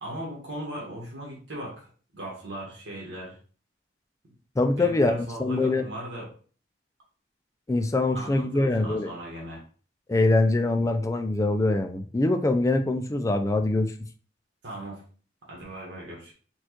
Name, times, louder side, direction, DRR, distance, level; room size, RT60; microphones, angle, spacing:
voice 1, 0.0-3.4 4.8-6.3 8.1-9.6 14.6-15.0 15.5-16.3, right 1 dB, 85° right, -3 dB, 1.3 m, -38 dB
voice 2, 4.6-5.1 5.4-5.8 7.7-9.1 10.1-13.9, left 2 dB, 15° left, 7 dB, 0.3 m, -23 dB
4.3 x 2.3 x 2.9 m, 0.41 s
head